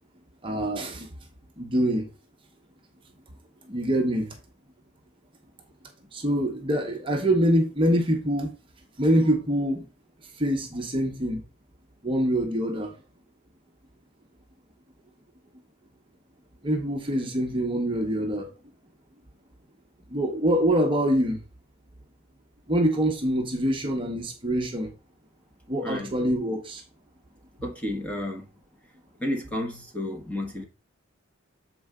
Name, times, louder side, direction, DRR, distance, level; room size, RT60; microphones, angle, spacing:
voice 1, 0.4-1.1 1.6-2.1 3.7-4.3 6.1-8.5 9.0-9.9 10.4-11.4 12.0-12.9 16.6-18.5 20.1-21.4 22.7-24.9 25.7-26.8, equal, 25° right, 0.9 m, -25 dB
voice 2, 27.6-28.4 29.2-30.6, left 1 dB, 5° left, 1.1 m, -31 dB
7.0 x 4.4 x 3.7 m
head